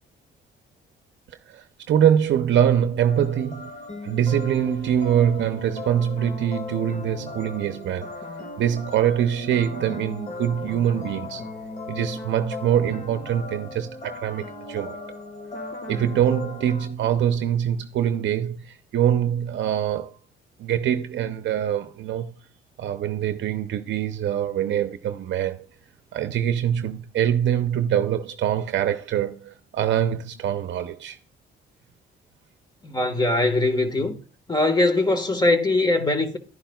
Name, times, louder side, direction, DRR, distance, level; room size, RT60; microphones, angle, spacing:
voice 1, 1.5-3.7 4.0-8.1 8.6-11.4 11.9-15.0 15.9-20.1 20.6-22.3 22.8-25.7 26.1-31.2, right 9 dB, 70° right, 0.7 m, -24 dB
sound 1, 3.0-16.9, left 2 dB, 40° left, 1.8 m, -37 dB
voice 2, 32.8-34.1 34.5-36.4, left 2 dB, 20° left, 1.5 m, -21 dB
11.0 x 10.5 x 2.3 m
cardioid pair, 90°, 20 cm